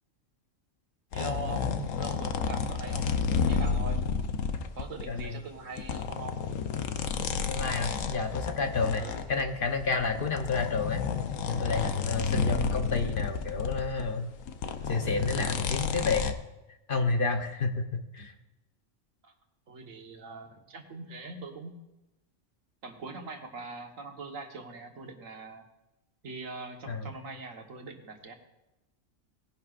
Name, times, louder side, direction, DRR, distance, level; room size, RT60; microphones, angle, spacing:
sound 1, 1.1-5.2 5.7-14.1 14.4-16.3, left 6 dB, 85° left, 1.2 m, -31 dB
voice 1, 1.1-4.0 4.8-6.4 9.0-9.2 19.2-19.3 19.7-21.8 22.8-25.7 26.2-28.3, right 3 dB, 85° right, 3 dB, 1.7 m, -42 dB
voice 2, 5.1-5.4 7.5-9.0 9.3-11.0 11.5-14.3 14.8-16.4 16.9-18.3 26.9-27.1, left 4 dB, 45° left, 5 dB, 1.0 m, -30 dB
19.0 x 10.5 x 2.5 m, 0.96 s
omnidirectional pair, 1.3 m